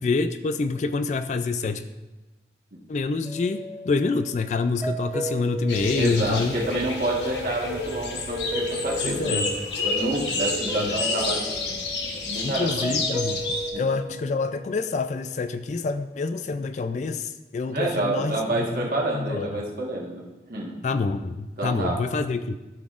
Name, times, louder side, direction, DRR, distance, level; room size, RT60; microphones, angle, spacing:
voice 1, 0.0-1.8 2.9-6.6 9.0-9.5 10.7-10.9 12.4-19.6 20.8-22.6, left 4 dB, 40° left, 11 dB, 0.3 m, -27 dB
sound 1, 3.2-7.1 8.5-10.4 10.7-15.2, right 1 dB, 10° right, 0.6 m, -35 dB
sound 2, 5.7-13.7, left 2 dB, 80° left, 1.1 m, -29 dB
voice 2, 6.0-9.4 9.8-13.0 13.7-13.8 17.7-20.2 20.5-20.7 21.6-22.0, right 2 dB, 55° right, -2 dB, 1.4 m, -29 dB
13.0 x 6.0 x 2.5 m, 1.1 s
head